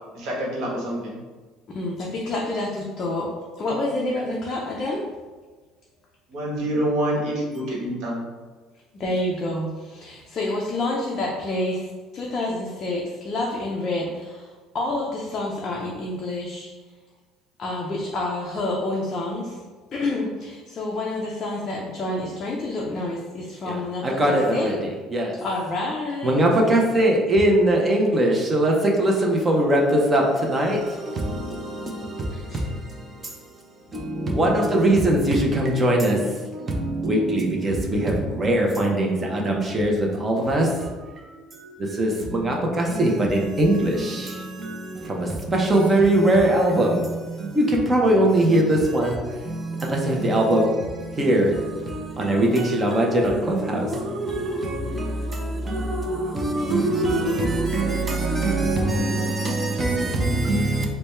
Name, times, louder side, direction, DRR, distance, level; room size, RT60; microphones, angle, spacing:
voice 1, 0.1-1.2 4.1-4.2 6.3-8.2, right 1 dB, 60° right, -3 dB, 1.0 m, -26 dB
voice 2, 1.7-5.1 8.9-16.7 17.6-19.6 19.9-24.7 25.4-26.4 32.3-32.6, left 2 dB, 30° left, -3 dB, 0.4 m, -28 dB
voice 3, 23.7-25.3 26.2-60.8, right 1 dB, 20° right, -1 dB, 0.5 m, -22 dB
3.3 x 2.1 x 4.1 m, 1.3 s
cardioid pair, 170°, 0 cm